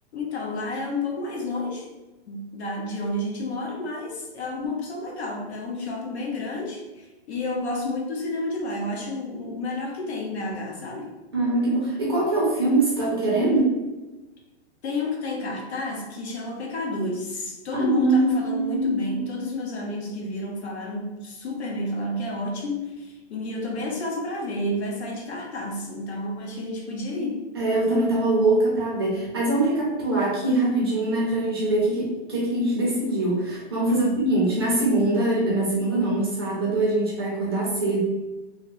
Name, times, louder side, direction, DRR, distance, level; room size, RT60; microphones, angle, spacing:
voice 1, 0.1-1.9 2.3-11.1 14.8-27.5 33.9-34.3, left 2 dB, 70° left, 0 dB, 1.0 m, -30 dB
voice 2, 11.3-13.8 17.7-19.2 27.5-38.0, right 2 dB, 25° right, -5 dB, 0.5 m, -23 dB
2.9 x 2.4 x 3.1 m, 1.1 s
hypercardioid pair, 175°, 34 cm